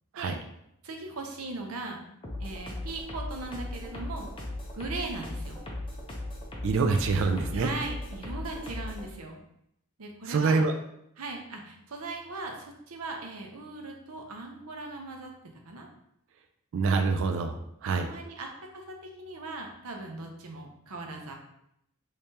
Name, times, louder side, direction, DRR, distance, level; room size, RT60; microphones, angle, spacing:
voice 1, 0.8-2.0 2.4-4.3 4.7-5.6 7.5-9.4 10.0-10.7 11.2-15.3 15.6-15.9 17.8-18.5 18.7-21.3, right 3 dB, 85° right, 2 dB, 0.7 m, -39 dB
sound 1, 2.2-9.1, left 1 dB, 25° left, 0.6 m, -37 dB
voice 2, 6.6-7.7 10.3-10.7 16.7-17.6 17.8-18.1, right 4 dB, 65° right, 7 dB, 0.3 m, -25 dB
3.3 x 3.3 x 2.8 m, 0.77 s
head